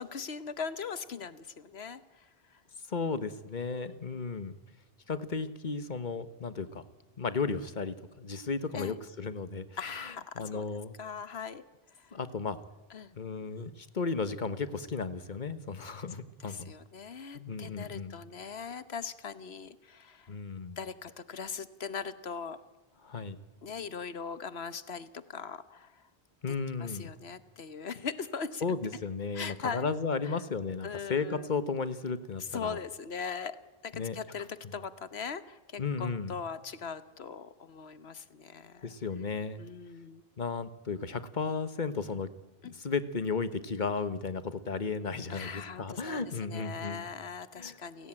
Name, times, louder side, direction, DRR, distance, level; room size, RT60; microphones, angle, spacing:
voice 1, 0.0-2.0 3.7-4.3 8.7-8.9 9.8-10.7 11.0-11.6 12.9-13.1 16.4-20.3 20.8-22.6 23.6-25.9 26.8-28.6 29.3-29.9 30.8-31.5 32.5-33.6 33.8-38.9 39.6-40.2 42.6-42.7 45.3-48.1, left 6 dB, 85° left, 14 dB, 1.4 m, -40 dB
voice 2, 2.9-4.5 5.1-6.8 7.2-9.7 9.9-10.9 12.1-12.6 13.1-16.7 17.3-18.2 20.3-20.8 23.0-23.4 26.4-27.1 28.6-32.8 33.9-34.2 35.8-36.4 38.8-39.6 40.4-42.3 42.7-47.1 47.5-47.8, left 4 dB, 50° left, 13 dB, 1.4 m, -34 dB
29.5 x 17.5 x 9.0 m, 1.1 s
omnidirectional pair, 1.0 m